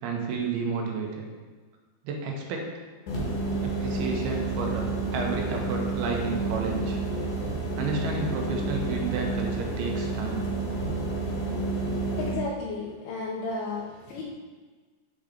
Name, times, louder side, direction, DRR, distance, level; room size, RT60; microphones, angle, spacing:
voice 1, 0.0-1.3 2.0-2.8 3.6-7.0 7.8-10.5, right 4 dB, 85° right, 1 dB, 2.8 m, -31 dB
sound 1, 3.1-12.3, right 3 dB, 65° left, 2.8 m, -30 dB
voice 2, 12.2-14.2, left 3 dB, 85° left, -5 dB, 2.7 m, -33 dB
7.1 x 3.8 x 4.9 m, 1.4 s
omnidirectional pair, 4.4 m